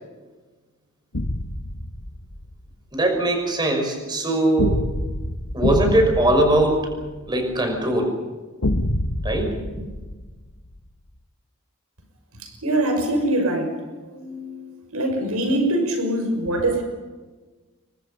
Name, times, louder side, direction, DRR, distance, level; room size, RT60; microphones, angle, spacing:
sound 1, 1.1-2.5 4.6-7.5 8.6-10.8, left 1 dB, 85° left, 1.6 m, -26 dB
voice 1, 2.9-4.8 5.5-7.0 7.3-8.2 9.2-9.8, right 1 dB, 20° right, 4 dB, 5.8 m, -21 dB
voice 2, 12.4-16.8, right 1 dB, 85° right, 4 dB, 6.2 m, -24 dB
30.0 x 23.5 x 5.6 m, 1.3 s
head